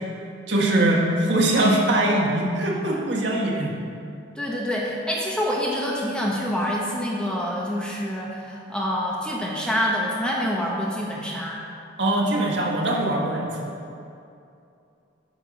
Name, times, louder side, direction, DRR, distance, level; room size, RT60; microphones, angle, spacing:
voice 1, 0.5-3.7 12.0-13.7, right 1 dB, 65° right, -2 dB, 1.7 m, -22 dB
voice 2, 4.4-11.6, equal, 5° left, -4 dB, 1.2 m, -26 dB
9.1 x 6.0 x 7.0 m, 2.5 s
head